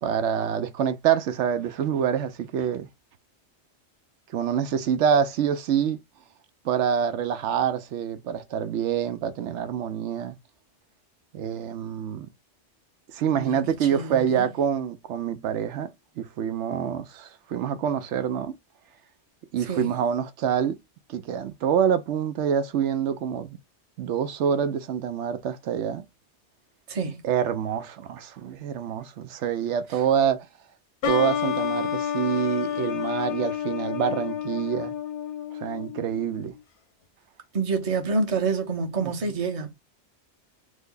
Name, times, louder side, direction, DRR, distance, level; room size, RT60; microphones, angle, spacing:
voice 1, 0.0-2.9 4.3-6.0 6.6-10.3 11.3-12.3 13.1-15.9 16.2-18.6 19.5-20.8 21.1-23.6 24.0-26.0 27.2-30.5 31.1-34.9 35.6-36.5 39.0-39.1, right 8 dB, 90° right, 0.9 m, -26 dB
voice 2, 13.4-14.5 19.6-20.0 26.9-27.2 29.9-30.0 37.5-39.7, right 4 dB, 35° right, 0.7 m, -28 dB
sound 1, 31.0-36.5, left 9 dB, 90° left, 1.2 m, -29 dB
3.4 x 2.1 x 3.7 m
omnidirectional pair, 1.2 m